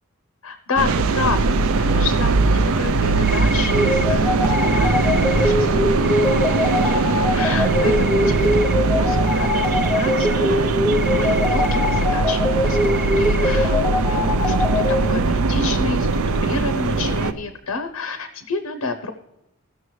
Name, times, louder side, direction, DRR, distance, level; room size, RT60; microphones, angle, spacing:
voice 1, 0.4-10.8 11.1-19.1, left 3 dB, 90° left, 9 dB, 0.7 m, -30 dB
sound 1, 0.8-17.3, right 3 dB, 70° right, 0.5 m, -20 dB
sound 2, 3.2-4.1 4.5-7.0 7.3-8.8 9.0-13.6, equal, 10° right, 1.2 m, -33 dB
sound 3, 3.7-15.1, left 2 dB, 5° left, 0.8 m, -23 dB
17.0 x 6.6 x 3.1 m, 0.89 s
head